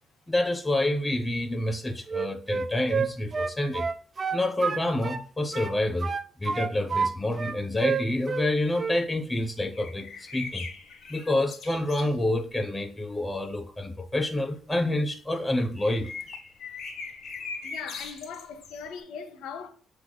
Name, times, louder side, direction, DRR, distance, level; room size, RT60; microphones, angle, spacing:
voice 1, 0.3-3.9 4.3-6.1 6.4-10.7 11.1-16.1, left 1 dB, 15° left, 0.9 m, -28 dB
Wind instrument woodwind instrument, 2.1-5.2 5.5-7.1 7.4-8.5 8.7-9.0, right 5 dB, 35° right, 0.4 m, -29 dB
sound 1, 9.7-12.0 15.8-19.0, left 4 dB, 60° left, 1.6 m, -40 dB
voice 2, 17.4-19.7, left 6 dB, 85° left, 1.1 m, -40 dB
7.1 x 3.4 x 4.1 m
cardioid pair, 90°, 0 cm